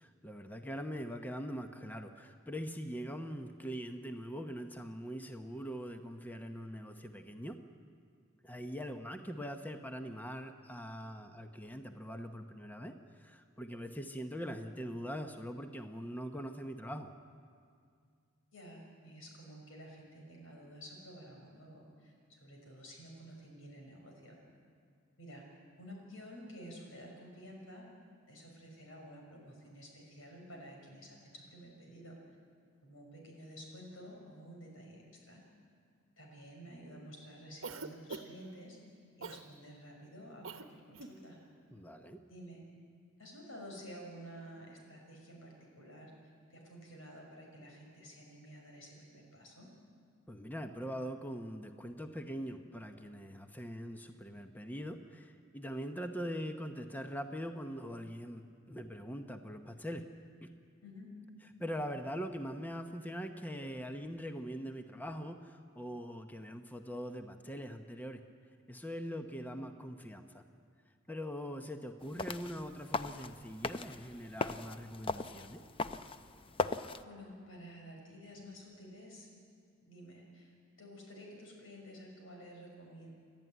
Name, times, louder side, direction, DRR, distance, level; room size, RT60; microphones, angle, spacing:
voice 1, 0.0-7.6 8.4-17.1 41.7-42.2 50.3-60.1 60.4-60.5 61.6-68.2 68.7-70.4 71.1-75.6, equal, 10° left, 6 dB, 0.9 m, -42 dB
voice 2, 18.5-24.4 25.2-25.4 25.8-27.9 28.3-32.2 32.8-35.4 36.2-38.8 39.2-41.4 42.3-42.6 43.2-46.1 46.5-49.7 60.8-61.1 77.0-79.3 79.8-83.1, equal, 90° left, 0 dB, 6.1 m, -51 dB
Cough, 37.6-38.5 39.2-39.5 40.4-40.7 40.9-41.2, right 4 dB, 80° right, 1.1 m, -43 dB
sound 1, 72.0-77.0, left 4 dB, 25° left, 0.6 m, -39 dB
30.0 x 12.5 x 9.3 m, 2.2 s
head